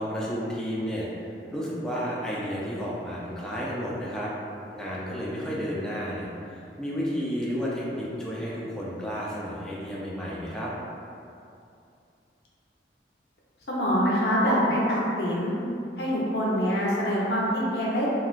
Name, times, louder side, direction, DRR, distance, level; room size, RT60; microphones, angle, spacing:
voice 1, 0.0-4.3 4.7-10.7, equal, 5° left, -6 dB, 0.4 m, -32 dB
voice 2, 13.7-15.5 16.0-18.1, equal, 70° left, -6 dB, 0.6 m, -25 dB
3.1 x 2.3 x 2.4 m, 2.5 s
head